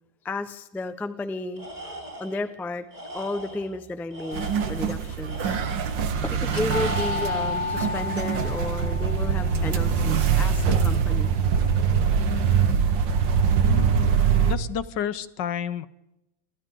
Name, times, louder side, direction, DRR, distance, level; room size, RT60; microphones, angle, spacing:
voice 1, 0.2-1.7 2.2-2.9 3.1-5.6 6.2-11.3, left 2 dB, ahead, 10 dB, 0.6 m, -32 dB
Tools, 1.6-2.5 2.9-3.7 4.1-6.0 6.7-7.6, equal, 20° right, 5.0 m, -40 dB
sound 1, 4.3-14.6, right 6 dB, 70° right, 2.0 m, -23 dB
sound 2, 4.8-5.4 5.7-5.8 6.4-12.3, left 5 dB, 30° left, 1.7 m, -34 dB
voice 2, 13.6-15.9, left 8 dB, 70° left, 15 dB, 1.5 m, -31 dB
28.5 x 23.5 x 3.9 m, 0.91 s
omnidirectional pair, 2.1 m